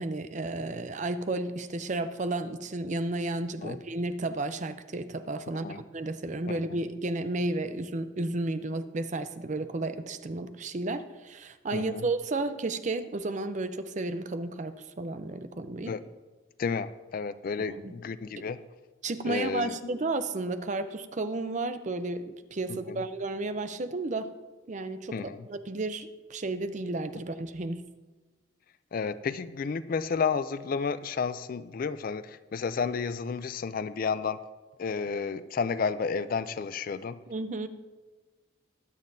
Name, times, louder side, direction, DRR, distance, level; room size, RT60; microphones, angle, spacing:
voice 1, 0.0-15.9 17.8-17.9 18.4-18.5 19.0-24.3 24.7-25.2 25.5-27.8 37.3-37.7, right 2 dB, 35° right, 10 dB, 0.5 m, -32 dB
voice 2, 11.7-12.1 15.9-16.0 16.6-18.6 19.2-19.9 22.7-23.0 25.1-25.5 28.9-34.4 34.8-37.2, left 5 dB, 45° left, 14 dB, 0.3 m, -31 dB
21.5 x 7.3 x 2.7 m, 1.3 s
head